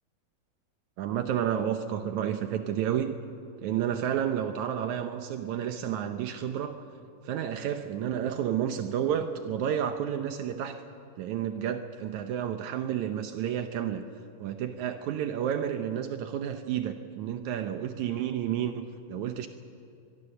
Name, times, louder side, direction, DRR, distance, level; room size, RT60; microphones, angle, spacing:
voice 1, 1.0-3.2 3.6-6.8 7.3-10.8 11.2-14.0 14.4-19.5, right 9 dB, 85° right, 7 dB, 1.6 m, -31 dB
24.5 x 21.5 x 6.8 m, 2.6 s
omnidirectional pair, 4.5 m